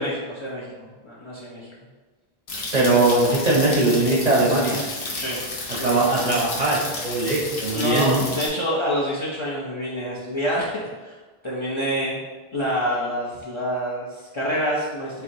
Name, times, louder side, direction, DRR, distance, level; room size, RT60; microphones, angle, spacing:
voice 1, 0.0-1.7 5.1-5.4 5.7-6.0 7.7-11.2 11.4-12.2 12.5-15.2, equal, 35° left, -6 dB, 0.6 m, -27 dB
sound 1, 2.5-8.5, left 2 dB, 65° left, 0.9 m, -32 dB
voice 2, 2.7-4.8 5.8-8.2, right 2 dB, 45° right, -4 dB, 0.7 m, -20 dB
4.4 x 2.9 x 2.6 m, 1.3 s
omnidirectional pair, 1.1 m